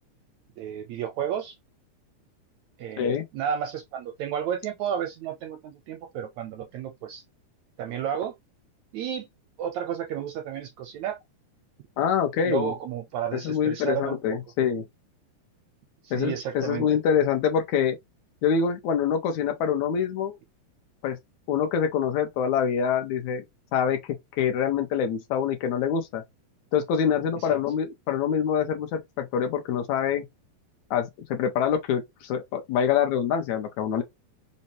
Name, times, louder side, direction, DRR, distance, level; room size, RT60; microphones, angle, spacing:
voice 1, 0.6-1.5 2.8-7.2 7.8-8.3 8.9-9.3 9.6-11.2 12.4-14.2 16.0-16.9 27.4-27.6, right 9 dB, 80° right, 1.6 m, -32 dB
voice 2, 12.0-12.7 13.3-14.8 16.1-18.0 18.4-20.4 21.0-21.2 21.5-23.4 23.7-24.0 24.4-26.2 26.7-30.2 30.9-34.0, left 7 dB, 75° left, 1.9 m, -25 dB
5.3 x 2.1 x 2.7 m
omnidirectional pair, 3.7 m